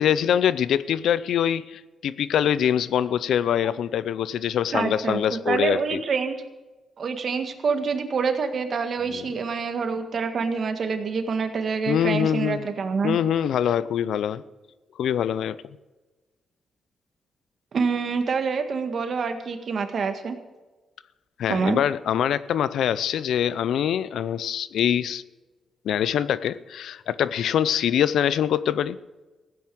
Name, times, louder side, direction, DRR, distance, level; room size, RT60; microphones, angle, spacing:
voice 1, 0.0-6.0 9.1-9.3 11.9-12.6 13.0-14.4 15.0-15.6 21.4-25.2 25.8-29.0, left 9 dB, 85° left, 17 dB, 0.5 m, -24 dB
voice 2, 4.7-6.4 7.0-13.2 17.7-20.4 21.5-21.8, right 5 dB, 55° right, 7 dB, 1.7 m, -26 dB
15.5 x 9.3 x 7.7 m, 1.2 s
cardioid pair, 95°, 0 cm